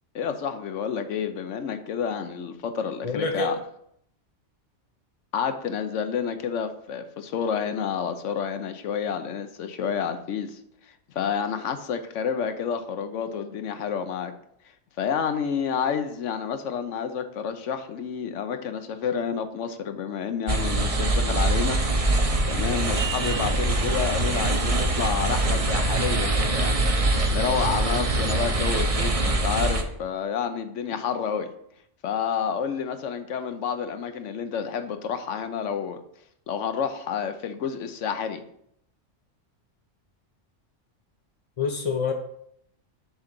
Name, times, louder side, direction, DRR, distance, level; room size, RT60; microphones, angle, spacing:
voice 1, 0.1-3.6 5.3-10.6 11.1-14.3 15.0-21.8 22.5-31.5 32.0-36.0 36.5-38.4, left 7 dB, 75° left, 8 dB, 1.0 m, -29 dB
voice 2, 3.0-3.6 41.6-42.1, left 4 dB, 40° left, 3 dB, 0.5 m, -26 dB
sound 1, 20.5-29.8, right 2 dB, 35° right, 0.7 m, -23 dB
7.1 x 3.8 x 6.0 m, 0.71 s
omnidirectional pair, 1.3 m